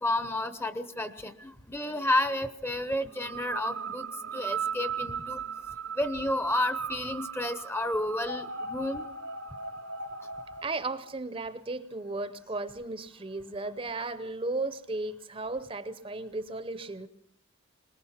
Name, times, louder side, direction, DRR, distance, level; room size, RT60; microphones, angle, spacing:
voice 1, 0.0-4.1 4.3-5.4 6.0-9.1, left 1 dB, 10° left, 12 dB, 0.8 m, -31 dB
sound 1, 3.1-10.6, right 5 dB, 90° right, 1.0 m, -37 dB
voice 2, 10.6-17.1, right 2 dB, 25° right, 13 dB, 0.8 m, -35 dB
22.5 x 20.5 x 5.8 m, 0.69 s
head